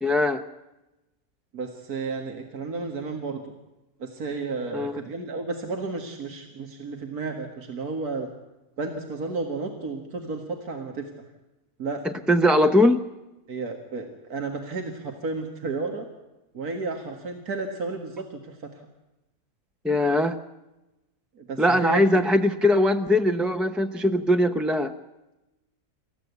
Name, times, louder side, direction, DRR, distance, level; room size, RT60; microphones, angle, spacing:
voice 1, 0.0-0.4 4.7-5.0 12.0-13.0 19.8-20.4 21.6-24.9, left 1 dB, ahead, 6 dB, 0.5 m, -21 dB
voice 2, 1.5-3.4 4.0-8.3 8.8-11.1 11.8-12.0 13.5-16.1 16.5-18.6 21.4-22.2, right 3 dB, 85° right, 3 dB, 2.3 m, -32 dB
28.5 x 14.0 x 8.3 m, 1.0 s
omnidirectional pair, 1.6 m